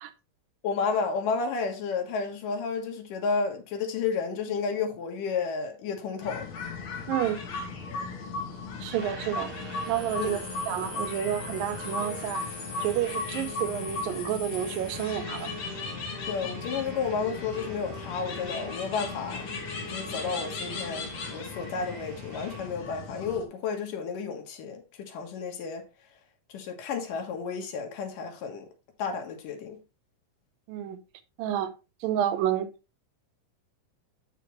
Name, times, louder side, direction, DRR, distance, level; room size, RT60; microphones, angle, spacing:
voice 1, 0.6-6.5 10.2-10.4 16.3-19.5 19.9-25.8 26.5-28.7 29.0-29.8, left 5 dB, 75° left, 3.0 m, -32 dB
sound 1, 6.2-23.5, left 4 dB, 55° left, 2.8 m, -37 dB
voice 2, 7.1-7.4 8.8-9.5 9.9-12.4 12.8-15.5 30.7-31.0 31.4-31.7 32.0-32.7, right 11 dB, 85° right, 2.5 m, -30 dB
sound 2, 8.9-22.7, right 3 dB, 55° right, 1.8 m, -44 dB
8.3 x 6.8 x 3.1 m
omnidirectional pair, 3.9 m